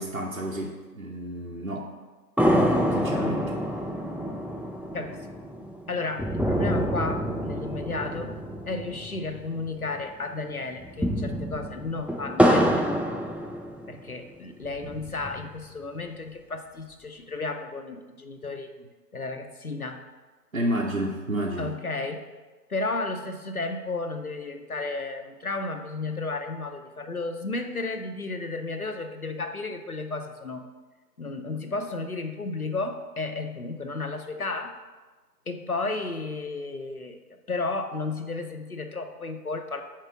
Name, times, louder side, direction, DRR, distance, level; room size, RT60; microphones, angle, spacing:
voice 1, 0.0-1.9 2.9-3.5 20.5-21.7, right 1 dB, 55° right, -1 dB, 0.7 m, -30 dB
sound 1, 2.4-10.0 10.2-10.3 10.8-14.1 14.7-15.6, equal, 5° right, 0.4 m, -27 dB
voice 2, 5.9-8.4 8.7-12.8 13.9-18.7 19.1-20.0 21.6-22.3 22.7-30.7 31.2-34.8 35.5-39.8, left 3 dB, 60° left, 6 dB, 0.7 m, -33 dB
4.6 x 4.5 x 5.9 m, 1.3 s
figure-of-eight pair, 175°, 50 cm